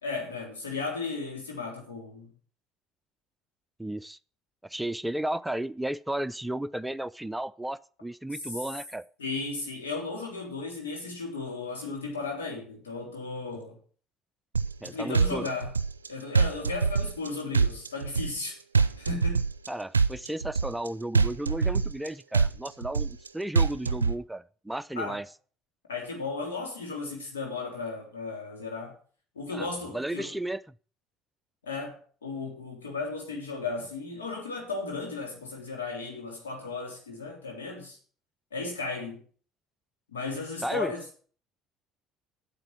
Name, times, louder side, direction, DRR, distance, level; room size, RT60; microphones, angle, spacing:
voice 1, 0.0-2.3 9.2-13.8 14.8-15.7 16.1-18.6 19.0-19.4 25.0-25.2 25.9-29.0 29.4-30.3 31.6-38.0 38.5-39.2 40.1-41.0, left 4 dB, 80° left, 3.6 m, -35 dB
voice 2, 3.8-4.2 4.6-9.0 14.8-15.5 19.7-25.3 29.5-29.7 29.9-30.6 40.6-40.9, right 1 dB, 5° right, 0.5 m, -34 dB
sound 1, 14.6-14.9 15.1-16.1 16.4-17.3 17.5-18.5 18.8-19.7 19.9-20.9 21.2-22.1 22.3-23.3 23.6-24.2, right 5 dB, 90° right, 0.5 m, -24 dB
9.0 x 8.1 x 7.4 m
figure-of-eight pair, 55°, 0 cm